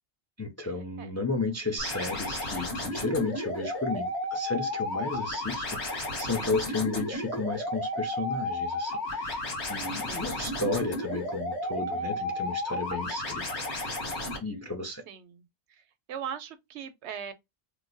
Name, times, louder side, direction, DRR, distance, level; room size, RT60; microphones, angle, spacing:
voice 1, 0.4-15.0, left 3 dB, 25° left, 0.4 m, -33 dB
sound 1, 1.8-14.4, left 1 dB, 80° left, 1.5 m, -33 dB
voice 2, 9.9-10.5 11.9-12.6 15.1-15.4 16.1-17.3, right 8 dB, 85° right, 0.9 m, -41 dB
3.0 x 2.1 x 3.8 m
omnidirectional pair, 1.1 m